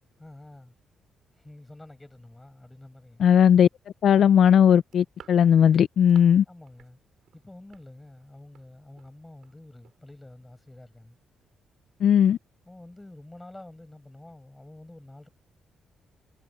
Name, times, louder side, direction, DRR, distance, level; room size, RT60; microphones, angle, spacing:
voice 1, 0.2-0.7 1.3-3.3 6.5-7.0 7.3-11.2 12.6-15.3, left 1 dB, 10° left, 7.7 m, -48 dB
voice 2, 3.2-3.7 4.0-6.4 12.0-12.4, left 8 dB, 65° left, 0.3 m, -18 dB
sound 1, 4.7-6.4 6.7-6.9 7.2-8.7 9.0-9.1 9.4-9.6 9.8-10.0, right 10 dB, 70° right, 6.1 m, -54 dB
cardioid pair, 105°, 0 cm